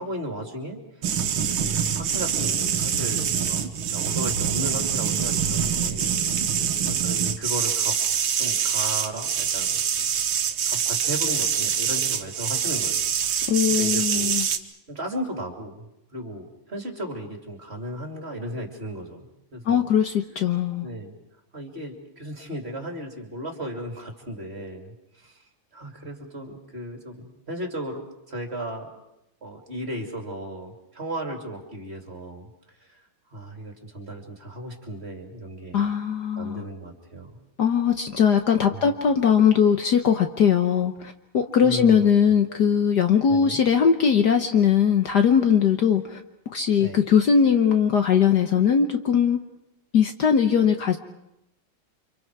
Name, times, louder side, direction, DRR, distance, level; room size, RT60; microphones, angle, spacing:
voice 1, 0.0-6.2 6.8-7.9 8.4-10.1 10.7-13.5 13.8-14.3 14.9-15.8 16.1-19.9 20.8-21.2 21.5-25.4 25.7-28.9 29.4-32.5 32.8-33.0 33.3-35.8 36.4-37.4 38.7-38.9 41.6-42.6 43.3-43.6 46.8-47.0, right 1 dB, 30° right, 2 dB, 3.0 m, -35 dB
sound 1, 1.0-14.6, right 8 dB, 80° right, 2.0 m, -25 dB
voice 2, 13.5-14.4 19.6-20.9 35.7-36.6 37.6-46.2 46.5-49.4 49.9-51.0, left 7 dB, 60° left, 6 dB, 1.5 m, -20 dB
29.5 x 26.0 x 4.7 m, 0.86 s
omnidirectional pair, 2.3 m